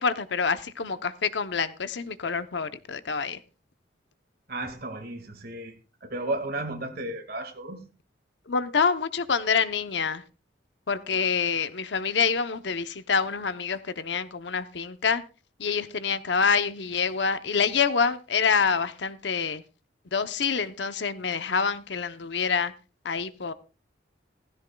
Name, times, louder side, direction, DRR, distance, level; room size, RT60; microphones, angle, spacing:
voice 1, 0.0-3.4 8.5-10.2 10.9-15.2 15.6-19.6 20.1-22.7 23.0-23.5, left 5 dB, 70° left, 0.8 m, -26 dB
voice 2, 4.5-7.8, right 2 dB, 55° right, 1.9 m, -34 dB
16.0 x 14.5 x 2.3 m
head